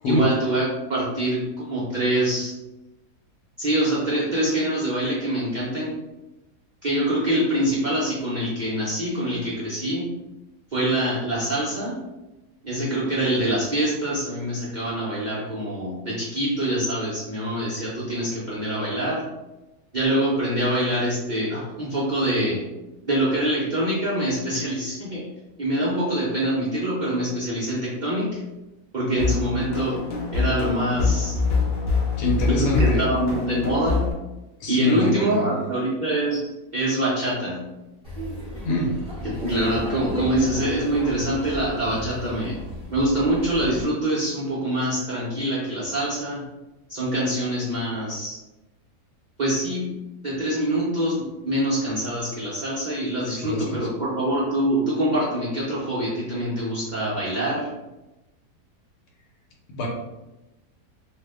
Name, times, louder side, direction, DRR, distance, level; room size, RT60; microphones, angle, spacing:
voice 1, 0.0-0.6 0.9-1.4 1.7-2.5 3.6-5.9 6.8-10.1 10.7-12.0 12.6-19.2 19.9-22.6 23.1-25.2 25.6-28.3 28.9-29.9 30.3-31.4 32.5-34.1 34.7-36.4 36.7-37.6 39.2-42.6 42.9-46.4 46.9-48.4 49.4-49.9 50.2-57.7, right 1 dB, 55° right, -9 dB, 0.5 m, -25 dB
sound 1, 29.1-34.1, left 4 dB, 65° left, 0.6 m, -25 dB
voice 2, 32.2-33.1 34.6-35.5 38.6-38.9 53.4-53.9 59.7-59.9, left 1 dB, 90° left, -2 dB, 1.3 m, -24 dB
Laughter, 38.0-43.8, left 1 dB, 5° right, 0.8 m, -35 dB
2.8 x 2.1 x 3.4 m, 1.0 s
omnidirectional pair, 1.7 m